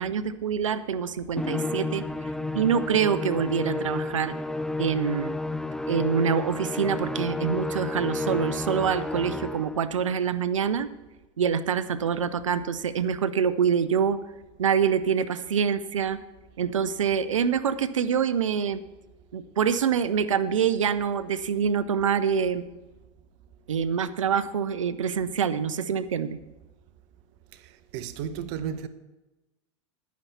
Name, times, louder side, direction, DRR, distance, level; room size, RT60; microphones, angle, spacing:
voice 1, 0.0-2.0 2.5-4.3 4.8-5.3 5.9-10.9 11.4-14.2 14.6-16.2 16.6-18.8 19.3-22.7 23.7-26.4, right 7 dB, 85° right, 0.6 m, -25 dB
Musical instrument, 1.4-9.8, left 2 dB, 5° left, 0.4 m, -31 dB
voice 2, 27.9-28.9, right 8 dB, 60° right, 0.9 m, -32 dB
10.5 x 9.3 x 4.2 m
hypercardioid pair, 90°, 16 cm